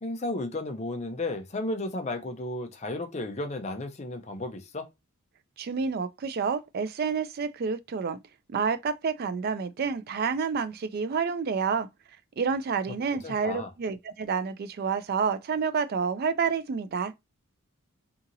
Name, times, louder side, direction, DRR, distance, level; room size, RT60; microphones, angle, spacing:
voice 1, 0.0-4.9 13.2-13.7, left 2 dB, 30° left, 0.5 m, -33 dB
voice 2, 5.6-8.2 8.5-11.9 12.4-17.1, right 5 dB, 45° right, 0.3 m, -29 dB
2.8 x 2.7 x 2.5 m
head